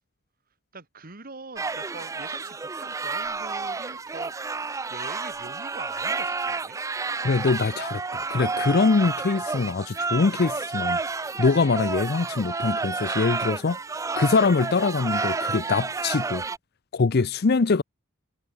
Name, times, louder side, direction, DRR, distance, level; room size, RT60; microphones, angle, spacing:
voice 1, 0.7-4.6 4.9-6.8, right 3 dB, 45° right, 2.2 m, -43 dB
sound 1, 1.6-16.6, right 4 dB, 15° right, 0.3 m, -30 dB
voice 2, 7.2-11.0 11.4-13.8 14.2-16.4 16.9-17.8, left 4 dB, 50° left, 0.6 m, -23 dB
head